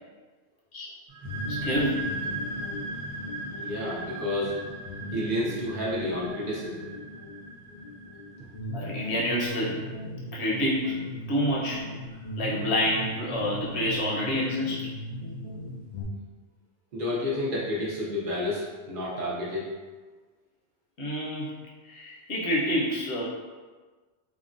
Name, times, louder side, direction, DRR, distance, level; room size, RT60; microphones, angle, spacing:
sound 1, 1.1-8.5, right 3 dB, 85° right, 0.9 m, -38 dB
sound 2, 1.2-16.0, left 1 dB, 55° left, 0.4 m, -38 dB
voice 1, 1.5-2.1 8.7-9.8 10.3-11.0 11.3-11.9 12.4-14.9 21.0-21.5 21.8-23.2, equal, 70° left, -5 dB, 1.0 m, -28 dB
voice 2, 3.3-4.6 5.1-6.9 16.9-19.7, left 1 dB, 55° right, -6 dB, 0.7 m, -30 dB
3.5 x 2.1 x 2.5 m, 1.4 s
omnidirectional pair, 1.2 m